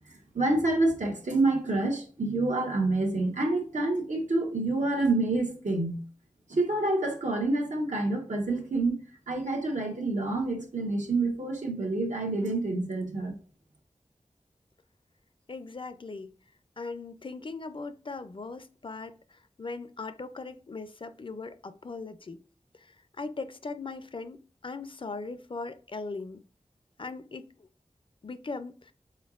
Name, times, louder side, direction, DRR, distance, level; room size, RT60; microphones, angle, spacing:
voice 1, 0.3-6.0 6.5-9.0 9.3-13.3, right 2 dB, 85° right, 1.0 m, -27 dB
voice 2, 15.5-16.3 16.8-22.4 22.7-26.4 27.0-27.7 28.2-28.9, left 3 dB, 45° left, 0.4 m, -39 dB
4.3 x 4.0 x 2.4 m
wide cardioid pair, 60°, 12 cm